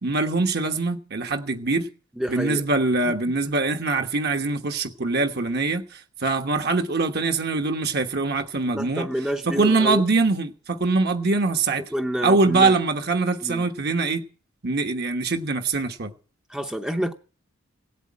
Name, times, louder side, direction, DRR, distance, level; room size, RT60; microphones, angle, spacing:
voice 1, 0.0-1.9 2.3-9.1 9.5-11.8 12.2-14.2 14.6-16.1, right 3 dB, 50° right, 1.2 m, -23 dB
voice 2, 2.2-2.6 3.0-3.1 3.5-3.6 8.7-10.1 11.9-12.7 13.4-13.7 16.5-17.1, equal, 5° right, 0.7 m, -28 dB
17.0 x 8.2 x 8.5 m
head